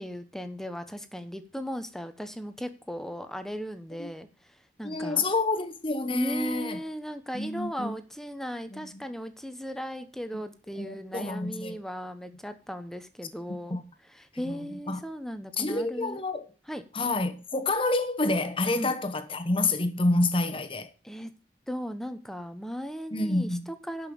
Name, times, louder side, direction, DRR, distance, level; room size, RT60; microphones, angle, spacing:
voice 1, 0.0-5.2 6.1-16.2 16.7-16.8 18.7-18.9 21.0-21.3 21.7-24.1, equal, ahead, 1.0 m, -37 dB
voice 2, 4.8-6.8 7.3-7.9 8.7-9.0 10.8-11.8 13.7-13.8 14.4-15.0 15.6-16.4 16.9-20.9 23.1-23.7, left 2 dB, 30° left, 1.2 m, -28 dB
11.5 x 5.6 x 7.0 m
head